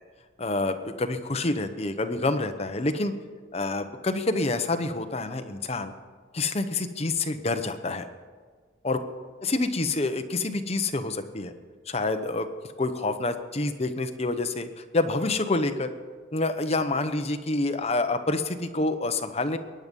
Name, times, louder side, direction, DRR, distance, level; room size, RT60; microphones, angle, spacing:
voice 1, 0.4-3.1 3.5-5.9 6.3-8.1 8.8-9.0 9.4-11.5 11.9-12.5 12.8-15.9 16.3-19.6, left 2 dB, 35° left, 8 dB, 0.9 m, -27 dB
21.5 x 9.6 x 5.4 m, 1.5 s
head